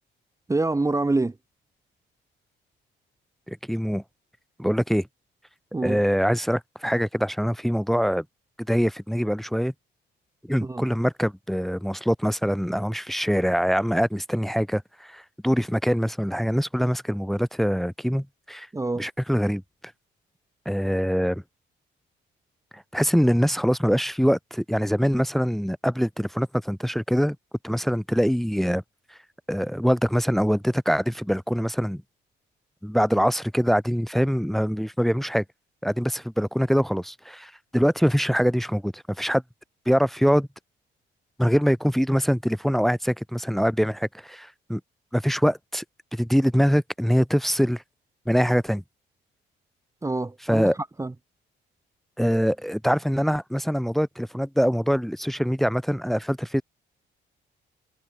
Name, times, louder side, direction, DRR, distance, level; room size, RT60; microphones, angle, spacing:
voice 1, 0.5-1.4 5.7-6.0 10.6-10.9 18.7-19.1 50.0-51.1, right 2 dB, 15° right, 1.3 m, -26 dB
voice 2, 3.5-4.0 4.6-5.1 5.8-8.2 8.7-9.7 10.5-18.7 19.0-19.6 20.6-21.4 22.7-27.4 27.6-28.8 29.5-32.0 32.8-35.4 35.8-39.4 39.8-40.5 41.4-44.8 45.1-45.8 46.1-47.8 48.3-48.8 50.5-50.8 52.2-56.6, equal, ahead, 1.4 m, -23 dB
cardioid pair, 90°, 20 cm